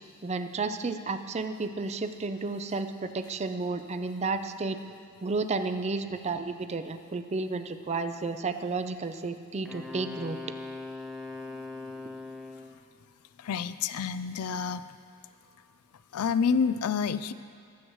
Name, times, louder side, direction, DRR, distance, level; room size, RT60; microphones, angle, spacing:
voice 1, 0.2-4.8 5.2-10.4, right 3 dB, 30° right, 9 dB, 0.4 m, -32 dB
Wind instrument woodwind instrument, 9.7-12.8, left 3 dB, ahead, 0.7 m, -40 dB
voice 2, 13.4-14.8 16.1-17.3, left 6 dB, 90° left, 13 dB, 0.4 m, -28 dB
20.0 x 7.9 x 3.1 m, 2.2 s
head